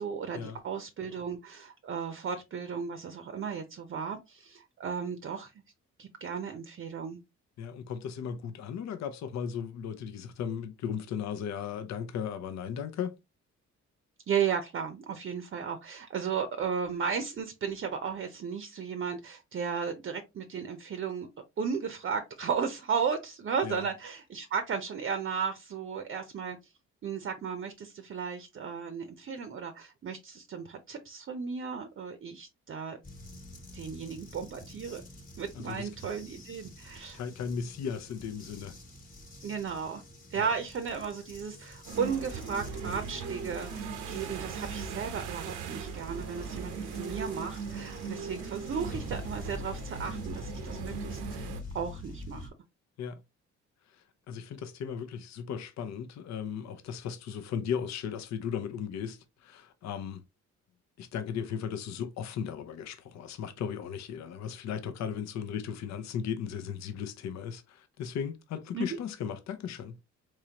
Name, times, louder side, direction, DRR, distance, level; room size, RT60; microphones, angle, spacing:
voice 1, 0.0-5.5 6.0-7.2 14.3-21.3 21.6-26.6 27.0-33.0 33.7-35.0 35.4-37.2 39.4-40.0 40.3-51.5 51.7-52.5 68.7-68.9, right 6 dB, 40° right, 0.7 m, -35 dB
voice 2, 7.6-13.2 23.6-23.9 35.6-35.9 37.1-38.7 40.4-40.5 53.0-53.2 53.9-60.2 61.0-70.0, left 7 dB, 65° left, 0.6 m, -36 dB
sound 1, 33.0-52.5, left 2 dB, 30° left, 1.2 m, -47 dB
sound 2, 41.8-51.6, right 5 dB, 85° right, 0.8 m, -39 dB
3.6 x 3.1 x 2.8 m
cardioid pair, 90°, 30 cm